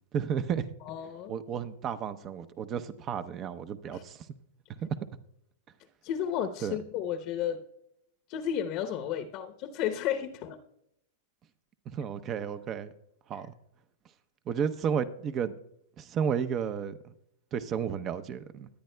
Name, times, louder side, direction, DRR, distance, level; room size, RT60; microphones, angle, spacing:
voice 1, 0.1-0.7 1.3-4.3 4.7-4.9 6.6-6.8 11.9-12.9 13.3-13.5 14.5-15.5 16.0-17.1 17.5-18.7, right 7 dB, 35° right, 12 dB, 0.7 m, -32 dB
voice 2, 0.8-1.3 3.9-4.0 6.0-7.6 8.3-10.6, left 9 dB, 45° left, 7 dB, 0.8 m, -33 dB
20.0 x 9.3 x 2.2 m, 0.77 s
hypercardioid pair, 115°, 0 cm